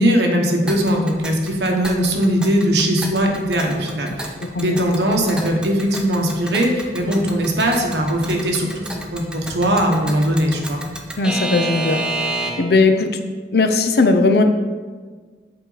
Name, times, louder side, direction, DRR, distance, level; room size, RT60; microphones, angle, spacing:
voice 1, 0.0-4.3 4.6-10.8, equal, 75° right, 1 dB, 1.1 m, -20 dB
Alarm / Clock, 0.7-12.8, right 2 dB, 5° right, 0.5 m, -31 dB
voice 2, 4.4-4.8 11.2-12.0 12.6-13.1 13.5-14.4, left 3 dB, 60° left, 7 dB, 0.6 m, -17 dB
7.9 x 4.8 x 4.0 m, 1.5 s
head